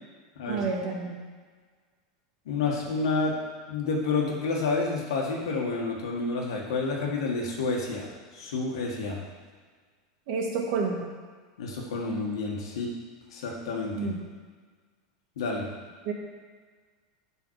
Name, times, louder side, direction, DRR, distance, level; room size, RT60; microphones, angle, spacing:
voice 1, 0.5-1.2 10.3-11.1 13.9-14.2 16.0-16.1, right 4 dB, 60° right, 1 dB, 1.5 m, -29 dB
voice 2, 2.4-3.4 3.7-8.1 8.3-9.2 11.6-12.9 13.3-14.1 15.4-15.6, left 3 dB, 85° left, -1 dB, 1.8 m, -29 dB
7.0 x 5.8 x 4.8 m, 1.5 s
supercardioid pair, 135°, 2 cm